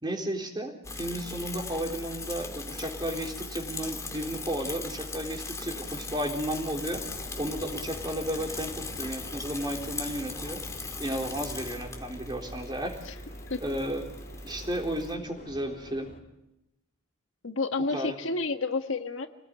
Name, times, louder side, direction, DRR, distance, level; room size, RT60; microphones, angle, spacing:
voice 1, 0.0-7.0 7.4-10.6 11.0-13.0 13.6-14.1 14.4-16.1 17.9-18.2, equal, 20° right, 3 dB, 3.8 m, -33 dB
Bicycle / Mechanisms, 0.8-15.1, left 3 dB, 15° left, 2.1 m, -39 dB
sound 1, 6.9-16.2, left 1 dB, 40° left, 2.8 m, -48 dB
voice 2, 17.4-19.3, left 3 dB, 75° left, 7 dB, 1.6 m, -30 dB
27.0 x 19.0 x 9.8 m, 0.88 s
head